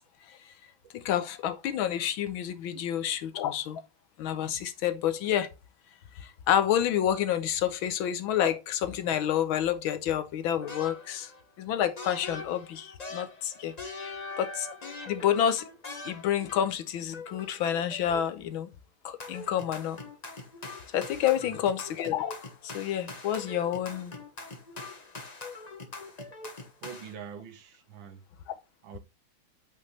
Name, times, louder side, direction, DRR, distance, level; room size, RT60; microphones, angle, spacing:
voice 1, 0.9-3.8 4.2-5.5 6.2-11.3 11.6-14.7 15.1-15.6 16.0-18.7 19.0-20.0 20.9-24.1, left 10 dB, 75° left, 1.6 m, -29 dB
sound 1, 10.6-11.4 12.0-16.8 17.1-18.4 19.2-27.1, left 3 dB, 25° left, 1.0 m, -42 dB
voice 2, 26.8-28.2 28.8-29.0, right 7 dB, 70° right, 1.7 m, -44 dB
8.6 x 5.5 x 3.3 m
omnidirectional pair, 2.3 m